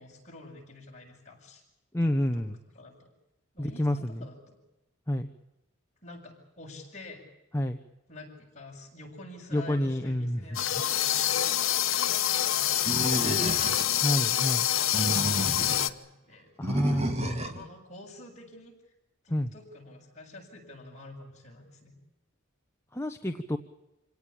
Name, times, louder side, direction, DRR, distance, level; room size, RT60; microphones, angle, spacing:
voice 1, 0.0-1.6 2.0-2.4 2.7-3.1 3.5-4.6 6.0-7.2 8.1-13.6 14.7-16.5 16.9-18.7 19.2-22.0, left 2 dB, 35° left, -1 dB, 7.6 m, -47 dB
voice 2, 1.9-2.6 3.6-4.3 5.1-5.3 7.5-7.8 9.5-10.4 14.0-14.7 16.6-17.4 19.3-19.5 22.9-23.6, left 1 dB, 10° left, 5 dB, 1.0 m, -29 dB
sound 1, 10.5-15.9, left 12 dB, 70° left, 1.1 m, -26 dB
Animal, 12.9-14.0 14.7-15.8 16.6-17.6, right 1 dB, 30° right, 2.2 m, -31 dB
27.5 x 18.0 x 8.7 m, 0.95 s
head